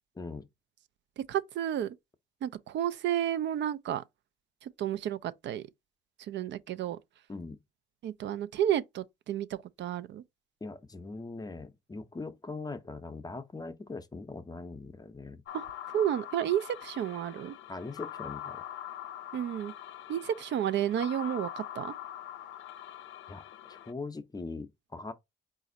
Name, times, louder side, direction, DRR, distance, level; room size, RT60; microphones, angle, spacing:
voice 1, 0.2-0.5 7.3-7.6 10.6-15.4 17.7-18.6 23.3-23.4 23.7-25.1, left 3 dB, 20° left, 0.6 m, -41 dB
voice 2, 1.3-1.9 2.4-4.0 4.6-5.7 6.2-7.0 8.0-10.2 15.5-15.7 15.9-17.5 19.3-19.7 20.1-21.9, right 10 dB, 65° right, 0.4 m, -31 dB
sound 1, 15.5-23.9, left 11 dB, 75° left, 0.4 m, -43 dB
4.1 x 2.5 x 3.8 m
cardioid pair, 90°, 20 cm